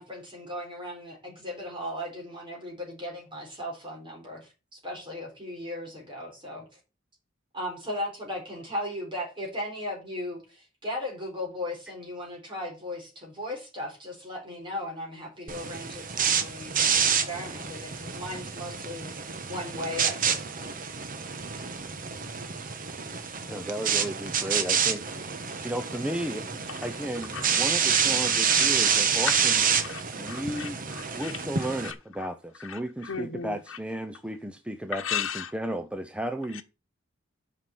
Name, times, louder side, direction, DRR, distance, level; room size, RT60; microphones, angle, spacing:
voice 1, 0.0-6.6 7.5-20.8, left 1 dB, 25° right, 4.3 m, -37 dB
sound 1, 15.5-31.9, right 7 dB, 45° right, 1.2 m, -28 dB
voice 2, 23.5-25.1 25.6-26.5 26.8-29.6 30.1-30.8 31.1-36.6, right 1 dB, 5° right, 0.6 m, -34 dB
voice 3, 27.9-28.7 29.2-29.4 29.8-32.3 32.6-33.8 34.9-35.5 36.5-36.6, left 7 dB, 85° left, 1.0 m, -36 dB
8.0 x 5.8 x 7.7 m
head